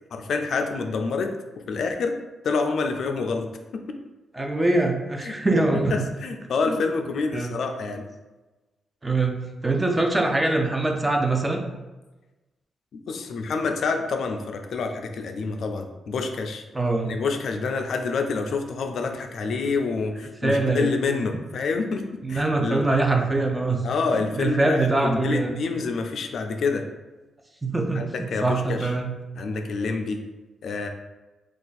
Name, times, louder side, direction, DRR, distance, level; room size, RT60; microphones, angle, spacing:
voice 1, 0.1-1.3 1.7-2.1 2.4-4.0 5.2-5.3 6.2-8.0 12.9-16.6 17.0-22.8 23.8-26.9 27.9-28.9 29.4-30.2 30.6-30.9, left 4 dB, 65° left, 4 dB, 0.3 m, -27 dB
voice 2, 4.3-6.0 6.7-6.8 7.3-7.5 9.0-11.6 16.7-17.1 20.4-21.0 22.2-23.8 24.1-25.5 27.6-29.1, right 2 dB, 15° right, 2 dB, 0.4 m, -23 dB
2.5 x 2.4 x 3.9 m, 1.1 s
cardioid pair, 105°, 0 cm